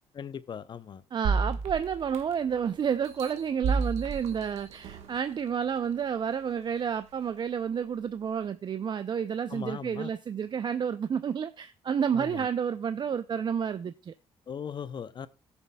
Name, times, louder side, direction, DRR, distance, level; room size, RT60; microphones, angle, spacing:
voice 1, 0.1-1.0 9.5-10.1 12.1-12.5 14.5-15.3, left 7 dB, 45° left, 0.6 m, -38 dB
voice 2, 1.1-14.1, right 7 dB, 45° right, 0.4 m, -30 dB
sound 1, 1.2-2.5 3.0-5.2 5.8-5.9, right 4 dB, 80° right, 1.2 m, -31 dB
17.0 x 7.0 x 2.2 m
cardioid pair, 85°, 11 cm